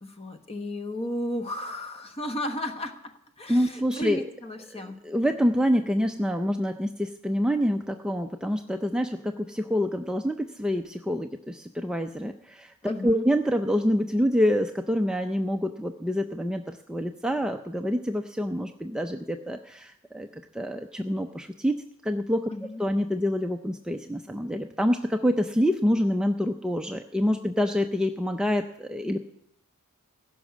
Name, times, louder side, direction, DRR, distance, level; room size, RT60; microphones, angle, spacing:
voice 1, 0.0-5.0 12.8-13.2 22.5-22.8, left 1 dB, 25° left, 7 dB, 1.1 m, -34 dB
voice 2, 3.5-4.2 4.7-22.5 22.8-29.2, equal, 5° right, 5 dB, 0.4 m, -27 dB
16.0 x 6.2 x 8.3 m, 0.76 s
head